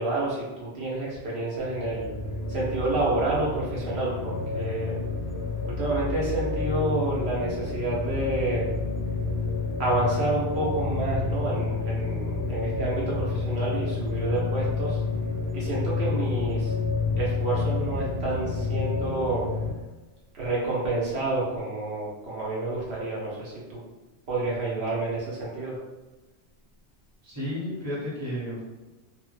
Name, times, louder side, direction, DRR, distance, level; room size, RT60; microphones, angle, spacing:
voice 1, 0.0-2.1 2.5-4.9 5.6-8.7 9.8-15.0 15.5-16.7 17.2-19.4 20.3-23.8 24.3-25.7, right 2 dB, 65° right, -5 dB, 0.9 m, -29 dB
sound 1, 1.7-19.7, left 4 dB, 25° left, 0.4 m, -29 dB
voice 2, 27.2-28.6, equal, 15° right, -7 dB, 0.9 m, -32 dB
3.0 x 2.0 x 3.1 m, 1.2 s
omnidirectional pair, 1.2 m